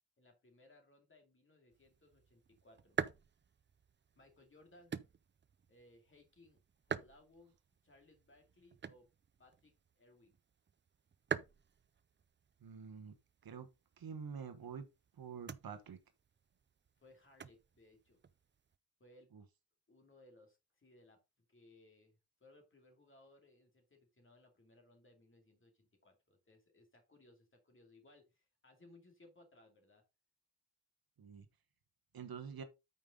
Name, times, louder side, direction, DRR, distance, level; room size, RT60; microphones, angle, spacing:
voice 1, 0.2-3.0 4.1-4.9 5.7-7.6 7.8-9.1 9.4-10.3 17.0-18.2 19.0-19.3 19.9-21.2 21.5-30.0, left 2 dB, 30° left, 2.5 m, -64 dB
sound 1, 1.7-18.8, right 6 dB, 30° right, 0.4 m, -48 dB
voice 2, 12.6-13.1 13.4-13.7 14.0-14.8 15.2-16.0 19.3-19.4 31.2-31.5 32.1-32.6, right 6 dB, 60° right, 1.2 m, -47 dB
8.8 x 5.5 x 3.7 m
wide cardioid pair, 165°, 40 cm